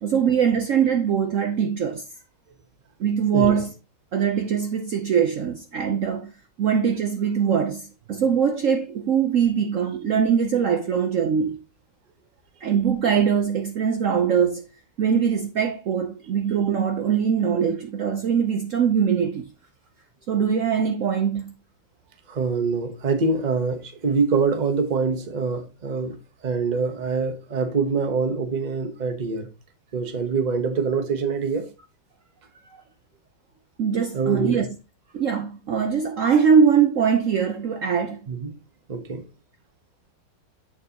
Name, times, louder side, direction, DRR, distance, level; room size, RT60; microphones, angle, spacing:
voice 1, 0.0-2.0 3.0-3.7 4.1-6.3 6.6-11.6 12.6-14.6 15.0-19.5 20.3-21.5 32.7-32.8 33.8-34.7 35.1-38.2, right 7 dB, 75° right, 0.7 m, -22 dB
voice 2, 3.3-3.7 22.3-26.2 26.4-29.5 29.9-31.7 34.1-34.7 38.3-38.6 38.9-39.2, right 4 dB, 35° right, 0.7 m, -25 dB
7.2 x 6.7 x 2.8 m
omnidirectional pair, 2.1 m